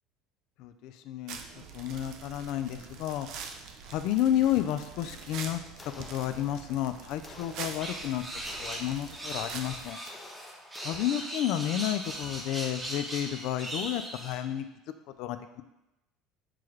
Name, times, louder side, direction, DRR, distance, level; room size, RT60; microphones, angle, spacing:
voice 1, 0.6-1.4 1.7-3.3 3.9-5.6 6.0-8.2 8.6-10.0 10.8-14.7 15.2-15.6, left 11 dB, 65° left, 10 dB, 0.3 m, -31 dB
sound 1, 1.3-9.9, right 6 dB, 65° right, 0.4 m, -44 dB
sound 2, 5.8-6.8 7.2-11.7, left 2 dB, 20° left, 0.6 m, -51 dB
sound 3, 7.8-14.4, right 1 dB, 15° right, 0.9 m, -39 dB
6.0 x 2.3 x 3.1 m, 0.93 s
supercardioid pair, 85°, 0 cm